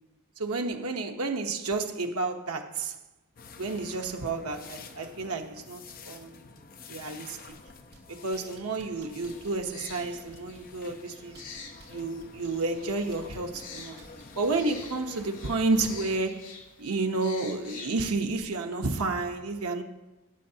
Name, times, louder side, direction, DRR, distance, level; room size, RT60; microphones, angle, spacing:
voice 1, 0.4-2.9 3.6-6.4 6.9-7.4 8.1-11.4 11.9-14.0 14.3-19.8, right 3 dB, 90° right, 4 dB, 1.0 m, -31 dB
sound 1, 3.4-16.2, left 3 dB, 40° left, 0.8 m, -49 dB
sound 2, 7.5-8.0 8.3-10.8 11.3-11.9 12.2-14.6 15.7-15.8, right 2 dB, 50° right, 2.6 m, -54 dB
sound 3, 9.2-18.2, left 5 dB, 65° left, 2.0 m, -48 dB
18.5 x 7.8 x 2.8 m, 1.1 s
head